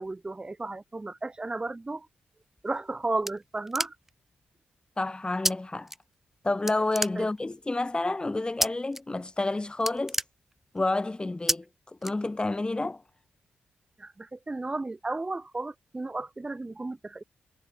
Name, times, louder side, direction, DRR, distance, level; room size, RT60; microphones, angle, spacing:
voice 1, 0.0-2.1 2.6-3.9 7.1-7.3 14.0-17.2, right 2 dB, 25° right, 1.6 m, -34 dB
sound 1, 2.6-4.3 5.4-5.5 5.9-6.4 6.7-7.6 8.6-9.0 9.3-9.5 9.7-10.9 11.5-11.6 12.0-12.7, right 1 dB, 10° right, 1.1 m, -30 dB
voice 2, 5.0-5.9 6.4-10.2 10.7-11.6 12.0-13.0, left 2 dB, 25° left, 5.1 m, -29 dB
supercardioid pair, 55°, 4 cm